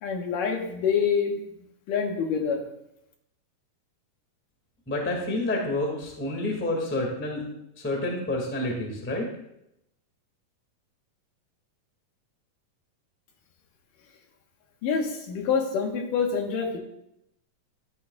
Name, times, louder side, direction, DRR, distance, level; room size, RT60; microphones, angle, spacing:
voice 1, 0.0-1.4 1.9-2.6 14.8-16.8, left 6 dB, 75° left, 2 dB, 2.8 m, -26 dB
voice 2, 4.9-7.5 7.8-9.2, left 1 dB, 5° left, 0 dB, 1.2 m, -29 dB
12.5 x 10.5 x 2.4 m, 0.81 s
omnidirectional pair, 3.9 m